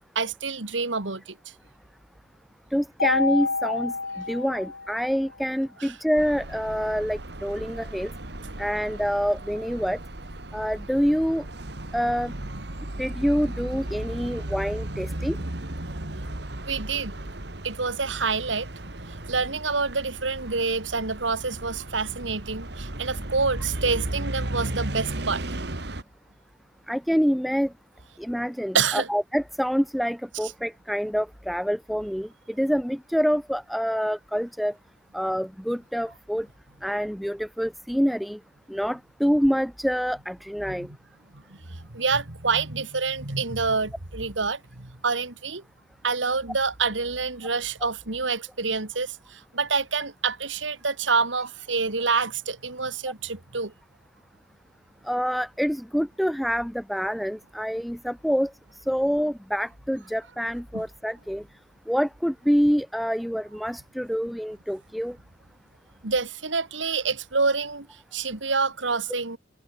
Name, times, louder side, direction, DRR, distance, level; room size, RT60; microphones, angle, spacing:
voice 1, 0.0-1.4 5.8-5.9 16.7-17.1 17.6-18.7 19.2-25.4 28.7-29.1 40.6-40.9 41.3-45.6 46.0-53.7 60.7-60.8 66.0-67.9 68.1-69.4, right 4 dB, 90° right, 2.6 m, -27 dB
voice 2, 2.7-3.9 4.3-8.1 8.6-10.0 10.5-11.4 11.9-12.3 13.0-15.4 26.9-27.7 28.2-34.7 35.1-36.5 36.8-38.4 38.7-40.9 55.0-58.5 58.9-61.4 61.9-65.2, equal, ahead, 1.4 m, -26 dB
Mallet percussion, 3.0-5.2, left 4 dB, 90° left, 3.5 m, -28 dB
sound 1, 6.2-26.0, right 1 dB, 60° right, 2.4 m, -35 dB
head